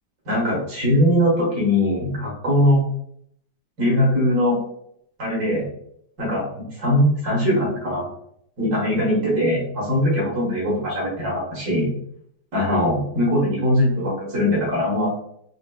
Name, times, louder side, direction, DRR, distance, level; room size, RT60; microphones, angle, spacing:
voice 1, 0.3-2.8 3.8-4.6 5.2-5.7 6.2-8.0 8.6-11.9 12.5-15.2, left 1 dB, 60° right, -5 dB, 1.9 m, -21 dB
5.0 x 2.1 x 2.2 m, 0.71 s
omnidirectional pair, 1.9 m